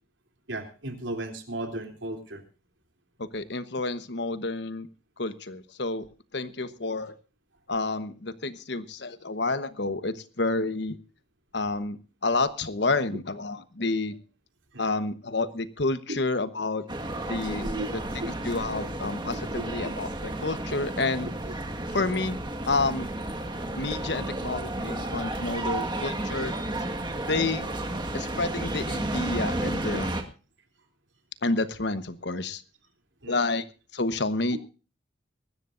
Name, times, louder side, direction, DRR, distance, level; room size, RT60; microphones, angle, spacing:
voice 1, 0.5-2.4 14.7-14.9 16.1-16.2 17.6-17.9 19.3-19.4 29.9-30.0 33.2-33.4 34.5-34.6, right 2 dB, 75° right, 6 dB, 3.3 m, -35 dB
voice 2, 3.2-4.9 5.2-6.1 6.3-7.1 7.7-11.0 11.5-14.1 14.8-16.8 17.3-17.6 18.1-21.3 21.9-22.4 22.7-23.1 23.8-26.5 27.3-27.6 28.1-30.2 31.4-32.6 33.3-33.6 33.9-34.6, left 3 dB, 60° left, 12 dB, 1.2 m, -29 dB
sound 1, 16.9-30.2, right 1 dB, 25° right, 1.7 m, -32 dB
23.0 x 13.0 x 2.6 m, 0.35 s
head